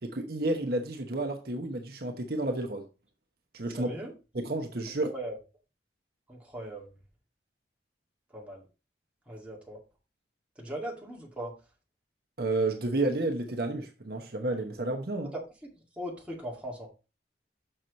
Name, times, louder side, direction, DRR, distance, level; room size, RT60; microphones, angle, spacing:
voice 1, 0.0-2.9 3.5-3.9 4.3-5.1 12.4-15.3, right 2 dB, 55° right, 1.0 m, -31 dB
voice 2, 3.8-4.1 5.1-5.4 6.3-6.9 8.3-8.6 9.3-9.8 10.6-11.5 15.9-16.9, right 1 dB, 5° right, 2.1 m, -39 dB
6.6 x 6.1 x 4.0 m
head